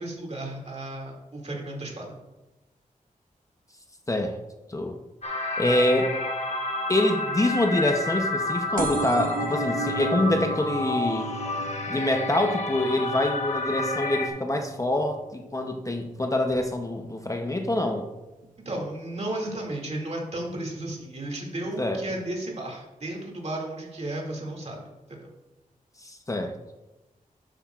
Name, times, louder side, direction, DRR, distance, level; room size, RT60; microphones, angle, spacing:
voice 1, 0.0-2.2 18.7-24.8 25.1-25.3, right 1 dB, 50° right, -1 dB, 2.2 m, -34 dB
sound 1, 5.2-14.3, left 2 dB, 50° left, 1.3 m, -30 dB
voice 2, 5.6-6.1 6.9-11.3 11.9-18.1 21.8-22.0 26.0-26.5, left 1 dB, 25° left, 4 dB, 0.7 m, -25 dB
sound 2, 8.8-16.0 16.5-16.9 17.8-17.9 18.1-18.2 18.4-18.5, right 3 dB, 75° right, 1.0 m, -36 dB
12.0 x 8.2 x 2.4 m, 1.1 s
wide cardioid pair, 105°, 14 cm